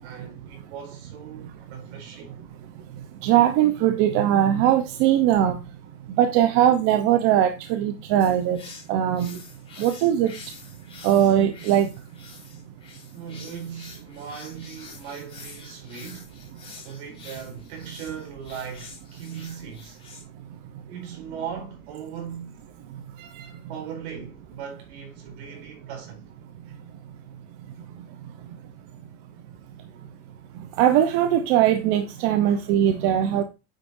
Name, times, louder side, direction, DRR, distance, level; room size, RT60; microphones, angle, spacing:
voice 1, 0.0-2.3 13.1-16.4 16.8-20.0 20.9-22.6 23.7-26.2 32.4-32.6, right 7 dB, 65° right, 4.5 m, -38 dB
voice 2, 3.2-5.6 6.1-8.6 8.9-9.4 9.8-10.3 11.0-11.9 23.4-23.5 30.8-33.4, right 11 dB, 40° right, 0.8 m, -20 dB
sound 1, 8.2-20.2, left 4 dB, 15° left, 4.1 m, -46 dB
9.1 x 7.7 x 2.6 m
supercardioid pair, 180°, 35 cm